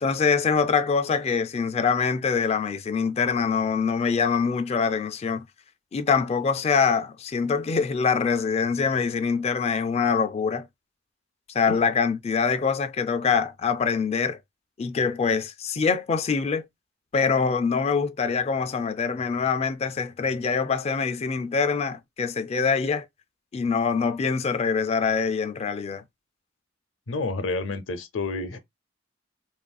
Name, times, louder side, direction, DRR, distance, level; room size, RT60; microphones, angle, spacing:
voice 1, 0.0-5.4 5.9-10.7 11.5-14.4 14.8-16.7 17.1-23.1 23.5-26.0, left 5 dB, 35° left, 0.3 m, -24 dB
voice 2, 27.1-28.6, left 3 dB, 85° left, 0.6 m, -29 dB
3.1 x 2.5 x 2.2 m
head